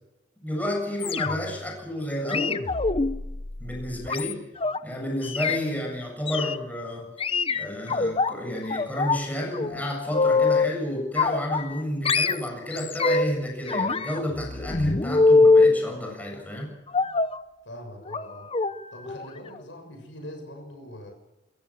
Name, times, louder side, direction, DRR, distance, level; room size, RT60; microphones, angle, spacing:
voice 1, 0.4-2.6 3.6-4.4 4.8-7.1 7.5-16.7, left 1 dB, 10° left, 0 dB, 7.4 m, -31 dB
sound 1, 1.0-1.6 2.3-4.8 5.2-5.6 6.3-6.6 7.2-8.3 8.7-9.2 9.5-10.8 11.2-11.8 12.1-13.4 13.7-15.8 16.9-17.4 18.1-18.2 18.5-18.7 19.1-19.3 19.6-19.7, left 3 dB, 30° left, 0.9 m, -23 dB
voice 2, 17.6-18.5 18.9-21.1, equal, 75° left, 3 dB, 6.7 m, -42 dB
28.0 x 15.5 x 7.4 m, 1.0 s
head